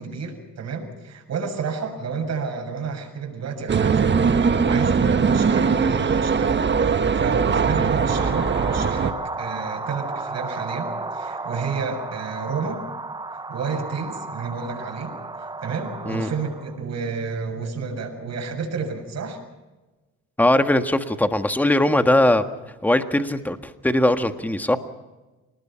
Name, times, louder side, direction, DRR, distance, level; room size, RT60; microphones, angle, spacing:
voice 1, 0.0-12.8 13.3-15.1 15.4-19.4, right 5 dB, 60° right, 2 dB, 7.0 m, -31 dB
sound 1, 3.7-9.1, right 5 dB, 35° right, 1.4 m, -20 dB
sound 2, 8.1-16.8, right 3 dB, 15° right, 0.8 m, -33 dB
voice 2, 20.4-22.4 22.8-24.8, left 1 dB, 5° left, 7 dB, 1.6 m, -20 dB
27.0 x 20.0 x 5.8 m, 1.1 s
cardioid pair, 90°, 30 cm